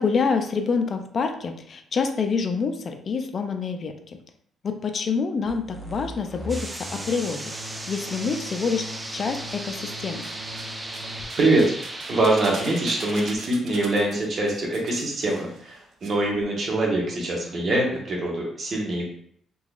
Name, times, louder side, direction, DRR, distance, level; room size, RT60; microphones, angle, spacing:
voice 1, 0.0-3.9 4.6-7.4 7.9-8.8 9.1-10.2, left 5 dB, 45° left, 5 dB, 0.4 m, -26 dB
sound 1, 5.5-11.2, equal, 5° left, 0.9 m, -40 dB
sound 2, 6.5-13.4, right 1 dB, 20° right, 0.4 m, -36 dB
sound 3, 9.1-10.0 10.2-16.1 16.3-16.4, right 4 dB, 65° right, 0.6 m, -42 dB
voice 2, 12.1-19.1, right 2 dB, 50° right, -3 dB, 1.3 m, -24 dB
3.8 x 2.9 x 2.5 m, 0.63 s
cardioid pair, 90°, 0 cm